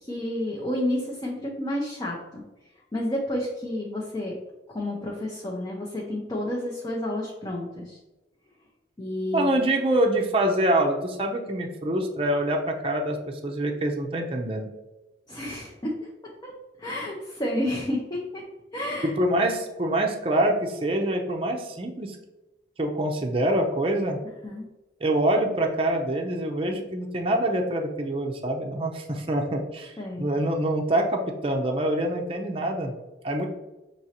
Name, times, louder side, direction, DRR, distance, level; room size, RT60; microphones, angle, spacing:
voice 1, 0.0-2.4 2.9-4.3 4.7-8.0 9.0-9.6 15.3-16.1 16.4-16.5 16.8-18.4 18.7-19.1 24.4-24.6 30.0-30.3, left 1 dB, 25° left, -3 dB, 0.6 m, -30 dB
voice 2, 9.3-13.2 13.4-14.7 19.2-22.2 22.8-24.2 25.0-32.9 33.2-33.5, right 1 dB, 30° right, 1 dB, 0.6 m, -25 dB
6.1 x 3.0 x 2.8 m, 1.0 s
head